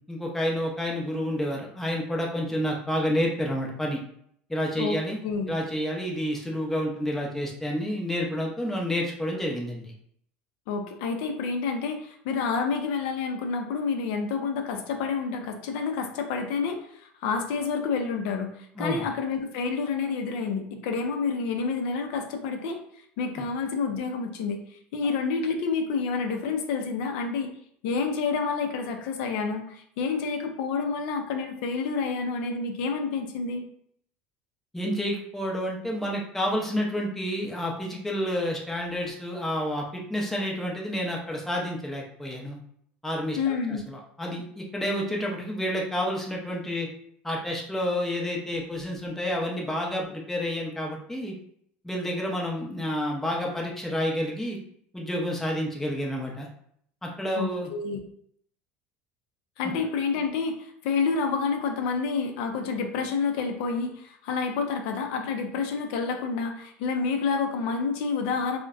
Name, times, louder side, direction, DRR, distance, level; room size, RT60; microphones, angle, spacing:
voice 1, 0.1-4.0 4.5-5.2 5.5-9.9 18.8-19.1 23.4-23.5 34.7-42.6 43.0-46.9 47.2-51.4 51.8-54.6 54.9-56.5 57.0-57.7 59.6-59.7, equal, 5° left, -1 dB, 0.5 m, -29 dB
voice 2, 4.8-5.5 10.7-22.8 23.2-27.5 27.8-33.7 43.4-43.8 57.4-58.0 59.6-68.6, left 5 dB, 75° left, 4 dB, 0.4 m, -29 dB
2.5 x 2.1 x 2.3 m, 0.66 s
supercardioid pair, 120°, 5 cm